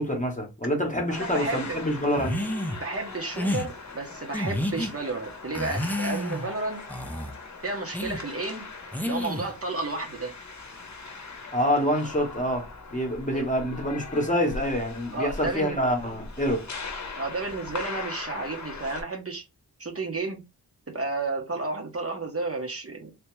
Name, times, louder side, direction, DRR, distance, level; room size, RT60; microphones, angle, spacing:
voice 1, 0.0-2.5 11.5-16.7, equal, 20° left, 0.9 m, -26 dB
sound 1, 1.1-19.0, left 3 dB, 50° left, 0.8 m, -40 dB
voice 2, 1.2-1.8 2.8-6.8 7.6-8.6 9.0-10.3 13.3-13.5 15.1-15.8 17.2-19.4 19.8-20.4 20.9-23.1, right 3 dB, 40° right, 0.9 m, -32 dB
sound 2, 2.2-2.8 3.3-3.7 4.3-4.9 5.5-6.5 6.9-7.3 7.9-8.2 8.9-9.5, left 1 dB, 5° left, 0.5 m, -30 dB
3.4 x 2.8 x 3.1 m
wide cardioid pair, 95°, 38 cm